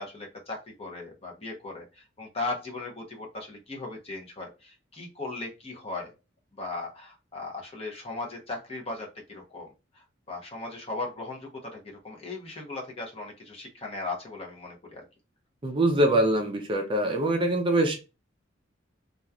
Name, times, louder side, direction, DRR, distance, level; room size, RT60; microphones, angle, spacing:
voice 1, 0.0-6.1 6.5-9.7 9.9-15.1, left 3 dB, 30° left, 0 dB, 0.8 m, -37 dB
voice 2, 15.6-17.9, right 1 dB, 25° right, 3 dB, 0.4 m, -23 dB
2.9 x 2.4 x 2.2 m, 0.29 s
head